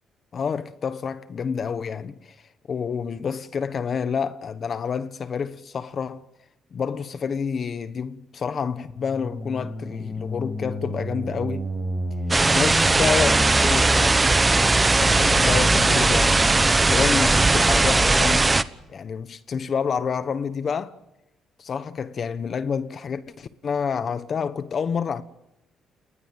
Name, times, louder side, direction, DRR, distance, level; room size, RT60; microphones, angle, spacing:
voice 1, 0.3-2.4 2.7-6.2 6.7-11.7 12.5-14.2 14.9-16.4 16.9-18.6 18.9-21.0 21.6-25.2, left 6 dB, 50° left, 1.2 m, -28 dB
sound 1, 8.8-17.5, equal, 5° left, 7.8 m, -29 dB
sound 2, 12.3-18.6, right 3 dB, 20° right, 1.1 m, -19 dB
30.0 x 20.0 x 7.5 m
cardioid pair, 90°, 0 cm